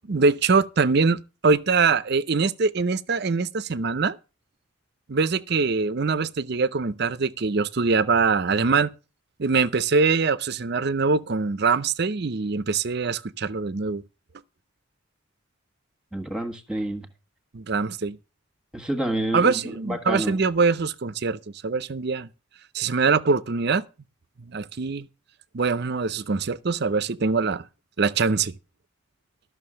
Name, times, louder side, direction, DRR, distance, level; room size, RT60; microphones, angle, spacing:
voice 1, 0.1-4.2 5.1-8.9 9.4-14.0 17.5-18.2 19.3-22.3 22.7-23.8 24.5-25.1 25.5-27.7 28.0-28.5, right 4 dB, 50° right, 0.6 m, -23 dB
voice 2, 16.1-17.1 18.7-20.4, right 1 dB, 5° right, 1.5 m, -29 dB
13.0 x 6.4 x 6.3 m
head